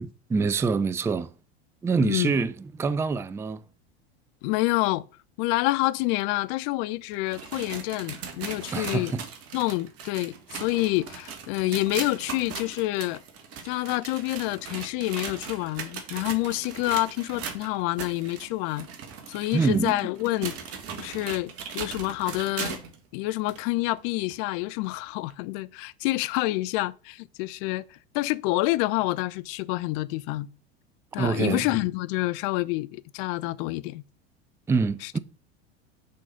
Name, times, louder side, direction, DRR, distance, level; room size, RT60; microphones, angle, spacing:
voice 1, 0.0-1.3 1.8-3.6 8.7-9.2 19.5-20.0 31.2-31.7 34.7-35.2, right 4 dB, 10° right, 0.4 m, -25 dB
voice 2, 2.0-2.3 4.4-5.0 5.4-9.1 9.5-13.2 13.6-18.9 19.3-20.6 21.0-22.8 23.1-30.5 31.1-34.0 35.0-35.1, left 19 dB, 55° left, 0.6 m, -28 dB
sound 1, 7.1-23.0 23.5-23.6 24.3-24.4 25.3-25.4, right 6 dB, 45° right, 1.7 m, -39 dB
6.5 x 4.0 x 5.8 m
hypercardioid pair, 85°, 32 cm